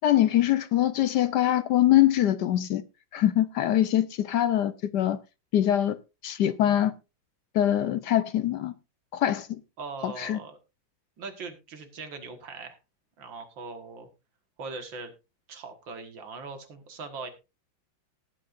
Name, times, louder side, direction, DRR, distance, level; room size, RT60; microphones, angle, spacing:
voice 1, 0.0-2.8 3.1-5.2 5.5-6.0 6.2-6.9 7.5-8.7 9.1-9.5 10.0-10.4, left 12 dB, 70° left, 1.2 m, -23 dB
voice 2, 9.8-10.6 11.2-12.8 13.2-14.1 14.6-15.1 15.5-17.3, right 4 dB, 70° right, 2.4 m, -40 dB
18.5 x 8.2 x 2.5 m
omnidirectional pair, 2.1 m